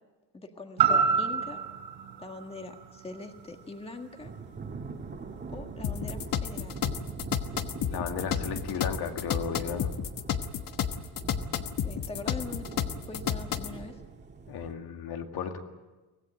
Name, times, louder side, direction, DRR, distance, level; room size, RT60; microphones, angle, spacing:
voice 1, 0.3-1.8 2.2-4.3 5.5-6.8 11.8-12.6 13.1-14.0, left 3 dB, 15° left, 4 dB, 1.6 m, -42 dB
sound 1, 0.8-4.9 5.3-5.4, right 6 dB, 80° right, 6.4 m, -29 dB
Thunder / Rain, 4.2-14.7, right 4 dB, 25° right, 2.0 m, -43 dB
sound 2, 5.8-13.7, left 9 dB, 55° left, 1.3 m, -31 dB
voice 2, 7.8-9.9 14.5-15.6, left 7 dB, 75° left, 4 dB, 2.3 m, -34 dB
24.5 x 17.5 x 8.9 m, 1.2 s
cardioid pair, 175°, 39 cm